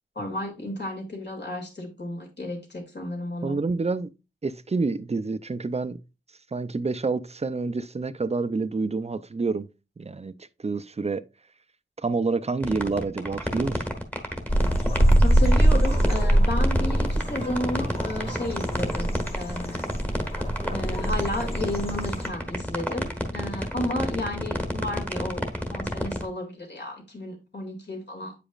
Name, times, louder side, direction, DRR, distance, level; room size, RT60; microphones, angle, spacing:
voice 1, 0.2-3.6 15.2-19.8 20.7-28.3, left 1 dB, 55° left, 2.5 m, -33 dB
voice 2, 3.4-4.1 4.4-6.0 6.5-9.7 10.0-11.2 12.0-13.9, right 3 dB, 30° right, 0.5 m, -28 dB
sound 1, 12.6-26.2, equal, 10° left, 1.3 m, -29 dB
sound 2, 14.5-22.3, right 1 dB, 30° left, 1.4 m, -23 dB
8.4 x 5.0 x 2.4 m
wide cardioid pair, 75°, 20 cm